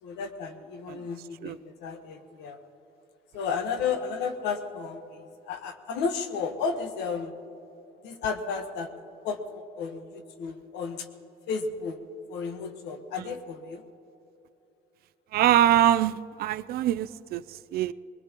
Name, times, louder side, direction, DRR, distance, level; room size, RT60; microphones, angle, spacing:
voice 1, 0.0-2.6 3.3-7.3 8.0-8.9 9.2-11.1 11.5-12.0 12.3-13.8, left 5 dB, 85° left, 7 dB, 1.3 m, -33 dB
voice 2, 15.3-17.9, right 12 dB, 65° right, 15 dB, 0.4 m, -24 dB
21.5 x 20.0 x 3.0 m, 2.9 s
cardioid pair, 110°, 17 cm